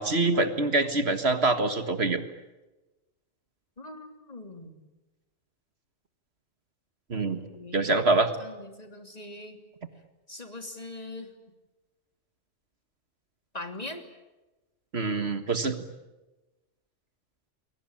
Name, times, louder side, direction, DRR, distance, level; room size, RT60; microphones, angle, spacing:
voice 1, 0.0-2.2 7.1-7.4 7.7-8.3 14.9-15.8, right 3 dB, 55° right, 8 dB, 1.9 m, -25 dB
voice 2, 3.8-4.7 7.4-8.0 8.4-9.6 10.3-11.3 13.5-14.0, left 2 dB, 30° left, 5 dB, 3.3 m, -41 dB
30.0 x 22.5 x 8.8 m, 1.1 s
omnidirectional pair, 1.3 m